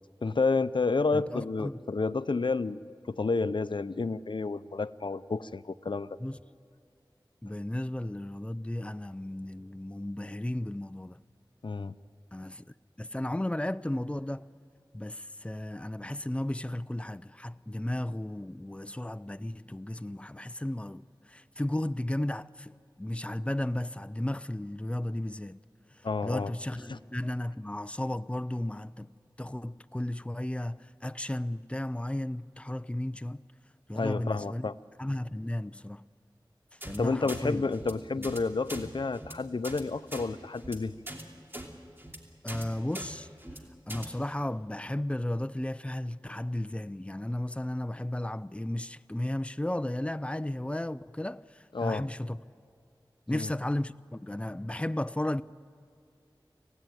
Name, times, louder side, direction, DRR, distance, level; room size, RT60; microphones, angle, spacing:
voice 1, 0.2-2.8 3.1-6.1 11.6-11.9 26.0-26.5 26.9-27.0 33.9-34.7 37.0-40.9 51.7-52.1 53.3-53.5, left 3 dB, 70° left, 0.6 m, -30 dB
voice 2, 1.1-1.8 6.2-6.4 7.4-11.2 12.3-14.5 14.9-25.6 26.2-29.1 29.4-33.4 33.9-34.7 35.0-36.0 36.9-37.7 38.2-38.3 42.4-43.3 43.9-52.4 53.3-55.4, left 1 dB, 15° left, 0.5 m, -34 dB
sound 1, 36.8-37.0 37.3-37.4 37.7-37.9 38.2-38.4 38.7-38.8 39.1-39.3 39.6-39.8 40.1-40.3 40.6-40.8 41.1-41.2 41.5-41.7 42.0-42.2 42.5-42.6 42.9-43.1 43.4-43.6 43.9-44.1, right 1 dB, 25° right, 2.8 m, -41 dB
25.5 x 17.0 x 9.2 m
wide cardioid pair, 45°, 9 cm